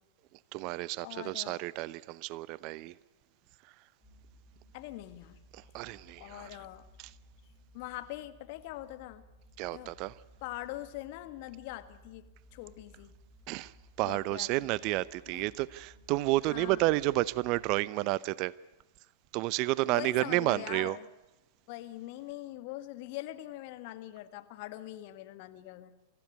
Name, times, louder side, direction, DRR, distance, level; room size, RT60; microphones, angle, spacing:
voice 1, 0.5-2.9 5.5-6.5 9.6-10.1 13.5-13.7 14.0-18.5 19.3-21.0, right 19 dB, 45° right, 0.7 m, -31 dB
voice 2, 1.0-1.6 4.7-5.4 6.2-6.8 7.7-9.3 9.7-10.0 10.4-13.1 14.0-14.7 15.3-15.4 16.5-16.9 19.8-21.1 21.7-25.9, left 15 dB, 55° left, 1.7 m, -43 dB
sound 1, 4.0-17.7, equal, 5° left, 6.6 m, -59 dB
24.5 x 15.5 x 9.6 m
hypercardioid pair, 100°, 0 cm